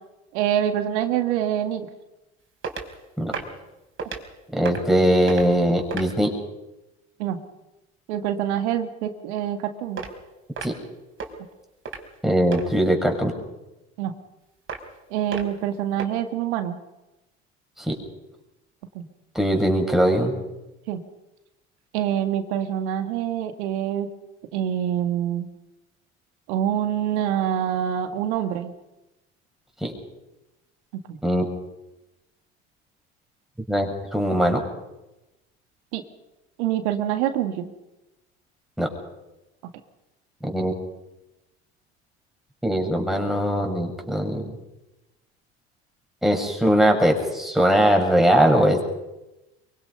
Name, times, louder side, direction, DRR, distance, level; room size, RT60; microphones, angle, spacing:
voice 1, 0.3-1.9 7.2-7.4 8.1-10.0 14.0-14.1 15.1-16.8 19.0-19.1 20.9-21.0 21.9-24.1 24.5-25.5 26.5-28.7 31.1-31.2 35.9-36.0 36.6-37.7, right 10 dB, 80° right, 8 dB, 2.0 m, -25 dB
sound 1, 2.6-2.9 3.3-3.6 4.0-4.2 4.6-5.0 5.3-5.5 5.9-6.2 10.0-10.1 10.6-10.9 11.2-11.3 11.9-12.1 12.5-12.6 14.7-15.0 15.3-15.6 16.0-16.1, right 5 dB, 35° right, 4.4 m, -32 dB
voice 2, 4.5-6.3 10.6-10.7 12.2-13.3 17.8-17.9 19.3-20.3 29.8-29.9 31.2-31.5 33.7-34.6 38.8-38.9 40.4-40.7 42.6-44.6 46.2-48.8, equal, ahead, 2 dB, 6.1 m, -20 dB
23.5 x 23.5 x 5.6 m, 0.99 s
hypercardioid pair, 70°, 34 cm